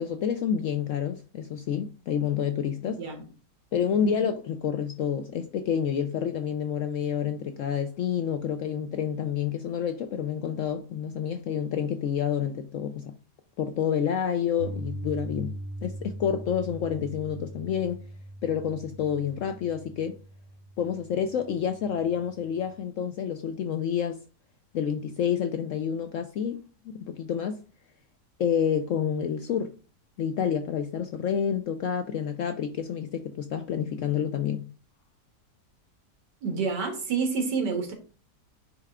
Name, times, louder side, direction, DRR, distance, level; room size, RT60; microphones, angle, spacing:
voice 1, 0.0-3.0 3.7-13.1 13.6-15.5 15.8-18.0 18.4-20.2 20.8-24.2 24.7-27.6 28.4-29.7 30.2-34.7, left 8 dB, 75° left, 0.7 m, -29 dB
Piano, 14.6-22.7, right 1 dB, 60° right, 1.0 m, -41 dB
voice 2, 36.4-37.9, right 5 dB, 90° right, 2.1 m, -28 dB
9.2 x 3.2 x 3.6 m
omnidirectional pair, 1.8 m